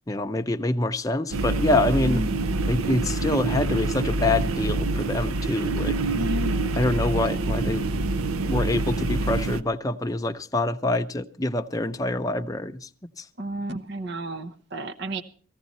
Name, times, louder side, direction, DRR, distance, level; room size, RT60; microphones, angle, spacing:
voice 1, 0.1-2.2 2.7-6.0 6.7-7.9 8.5-12.9 13.2-13.3, left 2 dB, 15° left, 0.7 m, -26 dB
sound 1, 1.3-9.6, right 2 dB, 80° right, 0.7 m, -26 dB
voice 2, 2.0-2.6 6.1-6.8 13.4-15.2, right 2 dB, 55° right, 0.9 m, -32 dB
18.5 x 15.5 x 4.1 m
head